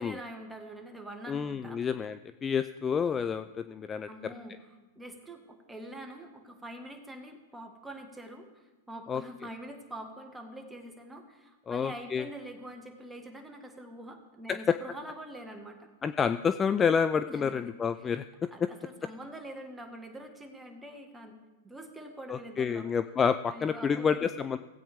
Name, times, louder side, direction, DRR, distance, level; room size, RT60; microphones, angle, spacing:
voice 1, 0.0-1.8 4.1-4.6 4.9-15.9 17.3-18.2 18.5-21.4 21.6-22.9 23.5-24.2, right 1 dB, 10° right, 4 dB, 1.5 m, -45 dB
voice 2, 1.3-4.3 9.1-9.2 11.7-12.3 14.7-14.8 16.0-18.2 22.3-24.6, left 6 dB, 20° left, 12 dB, 0.3 m, -29 dB
16.5 x 8.5 x 3.5 m, 1.1 s
hypercardioid pair, 110°, 0 cm